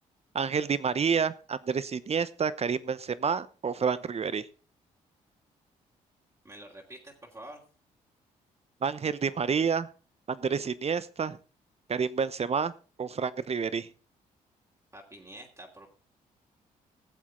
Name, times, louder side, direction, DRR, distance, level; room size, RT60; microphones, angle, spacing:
voice 1, 0.3-4.5 8.8-9.9 10.3-11.4 11.9-12.7 13.0-13.9, right 6 dB, 40° right, 16 dB, 0.9 m, -29 dB
voice 2, 6.4-7.6 14.9-15.9, right 1 dB, 20° right, -1 dB, 3.0 m, -47 dB
18.0 x 7.3 x 3.8 m, 0.37 s
supercardioid pair, 60°, 16 cm